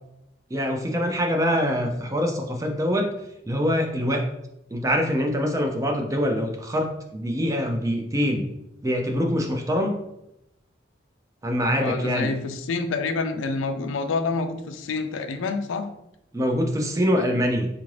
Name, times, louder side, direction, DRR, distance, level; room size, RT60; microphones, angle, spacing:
voice 1, 0.5-3.1 3.5-4.3 4.7-8.5 8.8-10.0 11.4-12.3 16.3-17.7, equal, 15° right, 4 dB, 0.3 m, -24 dB
voice 2, 11.8-15.9, left 4 dB, 90° left, 8 dB, 0.4 m, -27 dB
3.6 x 2.5 x 3.1 m, 0.84 s
head